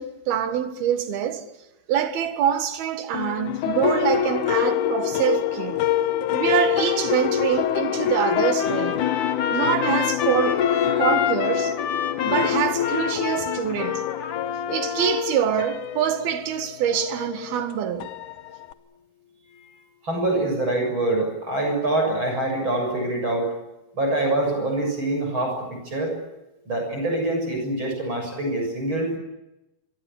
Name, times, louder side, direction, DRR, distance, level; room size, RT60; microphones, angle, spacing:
voice 1, 0.0-1.5 1.9-5.8 6.3-9.0 9.5-10.6 11.0-11.8 12.2-14.1 14.7-18.1, right 9 dB, 75° right, 3.6 m, -25 dB
sound 1, 3.1-18.7, left 10 dB, 65° left, 2.2 m, -26 dB
Trumpet, 8.1-15.2, left 8 dB, 50° left, 1.9 m, -28 dB
voice 2, 20.0-23.5 23.9-26.1 26.7-29.2, right 2 dB, 30° right, 7.7 m, -25 dB
24.5 x 23.5 x 8.5 m
omnidirectional pair, 4.4 m